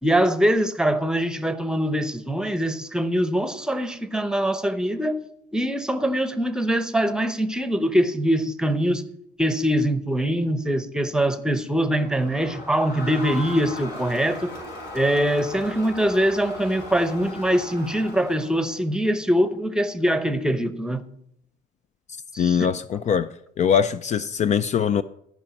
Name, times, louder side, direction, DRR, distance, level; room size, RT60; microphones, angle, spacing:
voice 1, 0.0-5.2 5.5-9.0 9.4-14.6 14.9-21.0 22.3-22.7, equal, 5° right, 0.8 m, -23 dB
Crowd, 12.0-18.8, left 1 dB, 70° left, 5.1 m, -38 dB
voice 2, 22.4-23.3 23.6-25.0, left 7 dB, 45° left, 0.4 m, -22 dB
13.5 x 5.3 x 7.1 m
cardioid pair, 110°, 17 cm